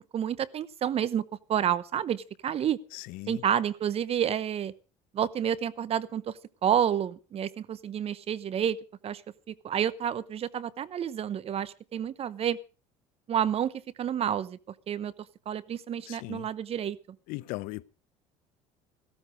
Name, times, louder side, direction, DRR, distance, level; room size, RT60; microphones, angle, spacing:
voice 1, 0.1-1.2 1.5-2.8 3.3-4.7 5.1-8.8 9.0-9.2 9.5-12.6 13.3-13.7 14.0-14.6 14.9-15.1 15.5-17.0, right 9 dB, 45° right, 0.9 m, -29 dB
voice 2, 2.9-3.4 16.1-16.5 17.3-17.8, left 20 dB, 70° left, 0.7 m, -38 dB
15.0 x 13.0 x 4.9 m
supercardioid pair, 95°, 15 cm